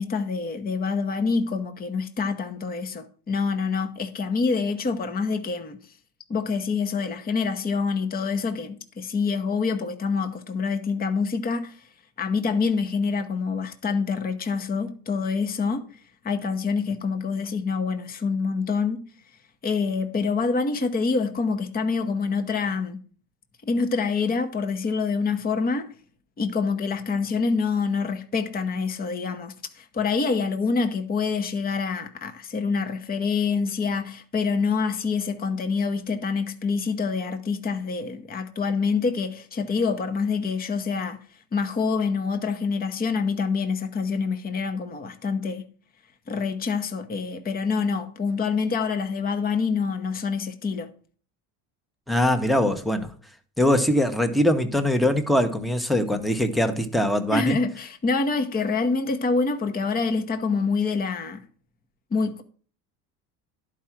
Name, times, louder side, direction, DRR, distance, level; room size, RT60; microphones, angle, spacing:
voice 1, 0.0-5.8 6.3-11.8 12.2-15.9 16.2-19.0 19.6-23.0 23.6-25.9 26.4-41.2 41.5-45.6 46.3-50.9 57.3-61.4 62.1-62.4, left 4 dB, 25° left, 1.0 m, -26 dB
voice 2, 52.1-53.1 53.6-57.6, left 1 dB, ahead, 1.0 m, -22 dB
11.0 x 4.9 x 5.9 m
supercardioid pair, 110°, 37 cm